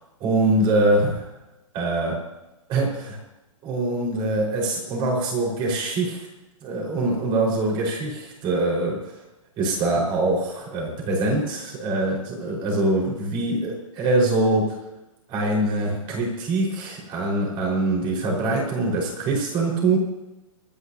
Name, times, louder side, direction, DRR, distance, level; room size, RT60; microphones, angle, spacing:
voice 1, 0.2-1.2 1.7-2.2 2.7-3.2 3.6-6.3 6.6-9.1 9.6-14.7 15.3-20.0, right 2 dB, 25° right, -1 dB, 4.7 m, -23 dB
26.0 x 10.0 x 2.8 m, 1.0 s
hypercardioid pair, 145°, 18 cm